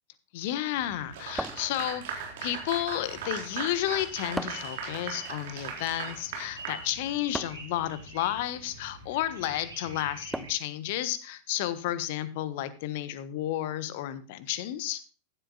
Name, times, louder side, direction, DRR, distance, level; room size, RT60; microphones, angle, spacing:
voice 1, 0.3-15.0, left 13 dB, 50° left, 14 dB, 1.4 m, -32 dB
sound 1, 0.7-10.5, right 1 dB, 80° right, 5.7 m, -47 dB
Clapping / Applause, 1.1-7.5, right 6 dB, 55° right, 4.2 m, -38 dB
sound 2, 1.4-2.3 4.4-4.8 7.3-7.8 10.3-10.8, right 1 dB, 5° right, 0.6 m, -36 dB
15.5 x 12.0 x 2.3 m, 0.35 s
figure-of-eight pair, 90°, 0 cm